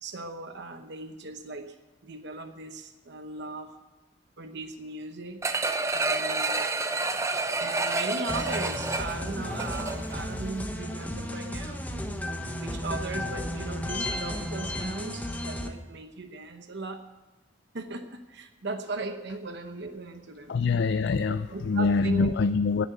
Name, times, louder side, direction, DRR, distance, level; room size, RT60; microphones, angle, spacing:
voice 1, 0.0-1.7 2.0-3.7 4.4-5.4 5.9-6.6 7.6-11.8 12.6-17.0 17.7-20.6 21.3-22.3, right 3 dB, 60° right, 7 dB, 1.0 m, -38 dB
sound 1, 5.4-10.2 10.6-10.7, right 3 dB, 15° right, 0.7 m, -29 dB
sound 2, 8.3-15.7, left 1 dB, 10° left, 1.1 m, -34 dB
voice 2, 20.5-22.9, left 4 dB, 60° left, 12 dB, 0.4 m, -24 dB
10.5 x 10.5 x 8.2 m, 1.1 s
head